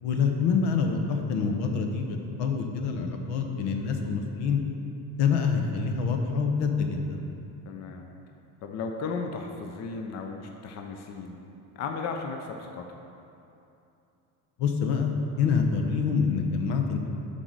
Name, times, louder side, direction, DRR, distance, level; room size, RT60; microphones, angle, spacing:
voice 1, 0.0-4.6 5.1-7.2 14.6-17.0, left 5 dB, 80° left, 4 dB, 1.1 m, -26 dB
voice 2, 7.7-8.1 8.6-11.4 11.8-12.9, left 4 dB, 40° left, 3 dB, 0.6 m, -35 dB
9.9 x 4.0 x 6.3 m, 2.8 s
cardioid pair, 160°, 39 cm